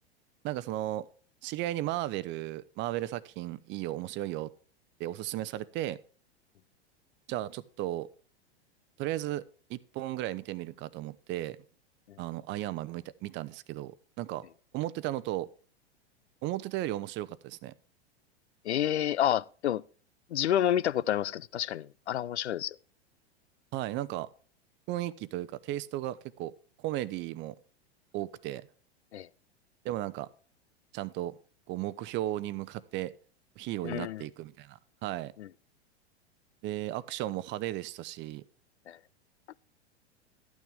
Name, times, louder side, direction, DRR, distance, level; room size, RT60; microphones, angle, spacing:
voice 1, 0.4-1.1 1.4-4.5 5.0-6.0 7.3-8.1 9.0-9.4 9.7-11.6 12.2-14.5 14.7-15.5 16.4-17.7 23.7-24.3 24.9-26.5 26.8-27.6 28.1-28.7 29.8-30.3 30.9-31.4 31.7-33.1 33.6-35.3 36.6-38.4, right 15 dB, 35° right, 0.7 m, -35 dB
voice 2, 18.6-19.8 20.3-22.8 29.1-29.3 33.8-34.2 35.4-35.5 38.9-39.0, left 11 dB, 85° left, 0.5 m, -29 dB
12.5 x 9.3 x 3.5 m
hypercardioid pair, 100°, 33 cm